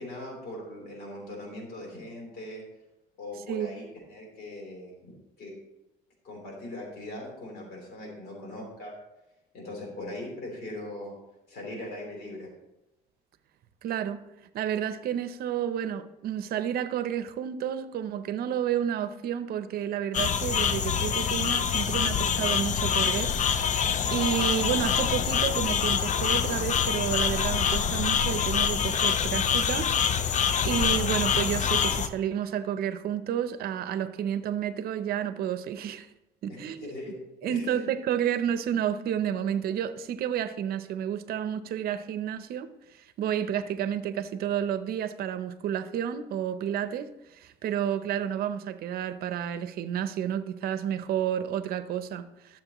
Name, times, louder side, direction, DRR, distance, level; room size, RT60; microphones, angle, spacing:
voice 1, 0.0-2.6 3.2-5.1 5.4-5.5 6.2-9.0 9.5-11.1 11.5-12.5 36.5-37.1 37.4-37.9, left 1 dB, 70° left, 3.7 m, -40 dB
voice 2, 13.8-14.3 14.5-23.8 24.1-30.3 30.6-36.1 36.4-37.0 37.4-42.7 43.0-52.6, right 9 dB, 65° right, 0.7 m, -30 dB
sound 1, 20.1-32.1, left 7 dB, 45° left, 0.6 m, -26 dB
12.5 x 7.3 x 3.0 m
cardioid pair, 110°, 17 cm